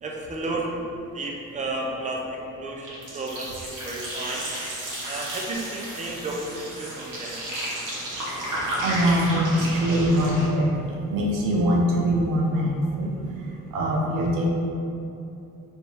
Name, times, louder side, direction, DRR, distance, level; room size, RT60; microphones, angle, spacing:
voice 1, 0.0-0.8 1.1-2.2 2.6-4.5 5.1-7.4, right 2 dB, 25° right, -1 dB, 0.6 m, -32 dB
sound 1, 2.8-10.5, right 1 dB, 70° right, 1.4 m, -32 dB
voice 2, 8.8-13.1 13.7-14.5, equal, 85° right, -2 dB, 0.7 m, -23 dB
3.4 x 2.6 x 4.5 m, 2.8 s
cardioid pair, 85°, 32 cm